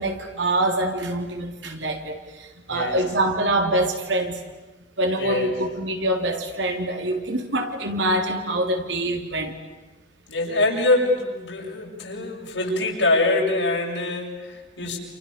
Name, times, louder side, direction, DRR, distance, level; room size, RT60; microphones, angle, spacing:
voice 1, 0.0-4.4 5.0-9.5 14.8-15.0, right 1 dB, 85° right, 4 dB, 3.9 m, -25 dB
voice 2, 5.2-5.5 10.3-15.0, left 2 dB, 85° left, -1 dB, 7.2 m, -24 dB
29.0 x 29.0 x 7.0 m, 1.1 s
head